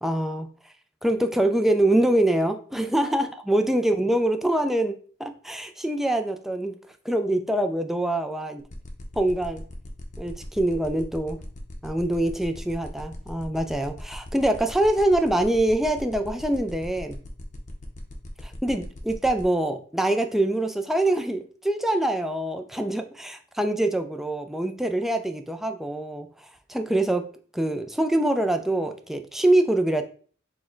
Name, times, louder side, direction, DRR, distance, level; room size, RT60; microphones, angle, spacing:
voice 1, 0.0-0.5 1.0-6.8 7.1-8.6 9.2-9.6 10.2-11.4 11.8-17.2 18.4-27.3 27.5-30.0, right 1 dB, ahead, 6 dB, 0.3 m, -24 dB
sound 1, 8.6-19.4, left 1 dB, 40° left, 0.7 m, -42 dB
4.3 x 2.2 x 4.4 m, 0.43 s
head